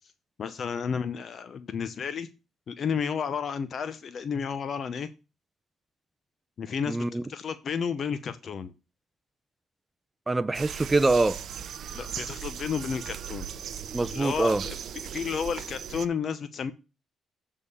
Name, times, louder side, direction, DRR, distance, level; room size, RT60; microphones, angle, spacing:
voice 1, 0.4-2.3 2.7-5.1 6.6-8.7 11.9-13.8 14.1-14.8 15.1-16.7, left 6 dB, 55° left, 0.6 m, -32 dB
voice 2, 6.9-7.2 10.3-11.4 13.9-14.6, right 2 dB, 15° right, 0.5 m, -24 dB
sound 1, 10.5-16.1, right 8 dB, 65° right, 0.6 m, -38 dB
8.2 x 3.6 x 6.8 m
cardioid pair, 90°, 0 cm